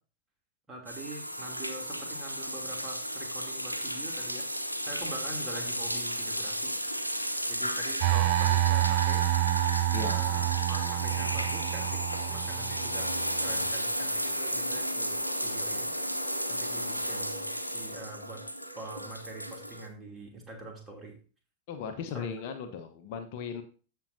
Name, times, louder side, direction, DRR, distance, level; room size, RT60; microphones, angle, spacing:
voice 1, 0.7-4.4 4.9-6.8 7.5-9.3 10.0-13.1 13.4-15.9 16.5-18.4 18.7-21.1 22.1-22.3, right 1 dB, 15° right, 0 dB, 2.8 m, -44 dB
sound 1, 0.9-19.9, equal, 90° left, 0.8 m, -34 dB
sound 2, 8.0-13.7, right 15 dB, 45° right, 0.5 m, -28 dB
voice 2, 21.7-23.6, left 6 dB, 50° left, 7 dB, 1.0 m, -37 dB
14.5 x 5.5 x 2.7 m, 0.38 s
figure-of-eight pair, 90°, 0 cm